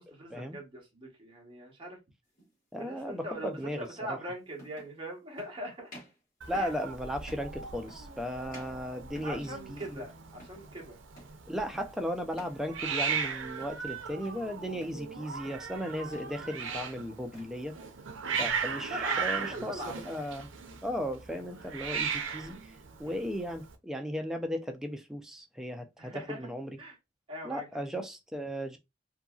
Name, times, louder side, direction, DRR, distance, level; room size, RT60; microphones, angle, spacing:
voice 1, 0.0-2.0 2.8-5.9 6.5-6.7 9.2-11.0 16.4-16.5 18.2-18.4 18.9-20.0 23.0-23.2 26.0-26.4 26.8-27.0 27.3-27.8, right 1 dB, 25° right, 1.0 m, -41 dB
sound 1, 2.3-2.5 3.8-3.9 4.5-5.0 5.4-5.6 5.9-6.2 6.5-6.8 7.2-7.5 7.9-8.2 8.5-9.5 9.8-10.1 10.3-10.7 11.2-11.4 11.7-12.0 12.3-12.6 12.9-13.3 13.6-14.4 14.8-15.1 15.4-15.7 16.0-16.4 16.7-17.6, right 1 dB, 45° left, 1.5 m, -53 dB
voice 2, 2.7-4.2 6.5-10.0 11.5-17.8 18.4-20.5 20.8-22.6 23.0-26.8 27.4-28.8, equal, 5° right, 0.4 m, -36 dB
Hiss, 6.4-23.7, right 6 dB, 75° right, 0.5 m, -37 dB
2.7 x 2.6 x 2.3 m
head